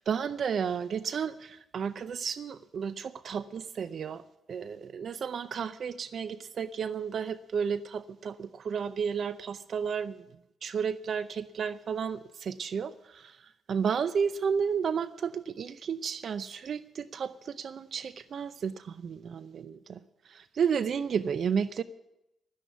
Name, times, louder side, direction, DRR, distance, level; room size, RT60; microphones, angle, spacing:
voice 1, 0.0-4.2 4.5-10.2 10.6-13.3 13.7-20.0 20.3-21.8, right 6 dB, 60° right, 15 dB, 0.5 m, -32 dB
13.0 x 10.0 x 8.1 m, 0.88 s
supercardioid pair, 60°, 0 cm